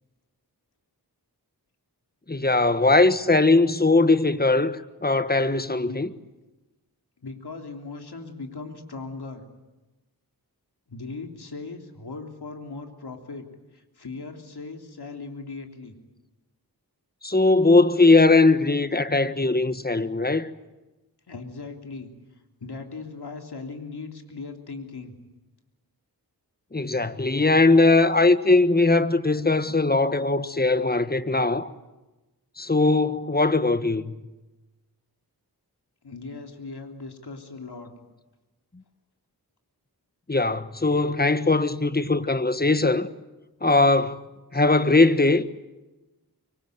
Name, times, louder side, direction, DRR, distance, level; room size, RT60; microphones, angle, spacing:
voice 1, 2.3-6.1 17.2-20.5 26.7-31.7 32.6-34.1 40.3-43.1 43.6-44.2 44.5-45.4, left 3 dB, 25° left, 1.4 m, -20 dB
voice 2, 7.2-9.4 10.9-13.4 13.7-15.9 21.3-22.1 22.6-25.1 36.0-37.9, left 3 dB, 85° left, 3.3 m, -38 dB
24.5 x 24.5 x 9.4 m
wide cardioid pair, 60°, 38 cm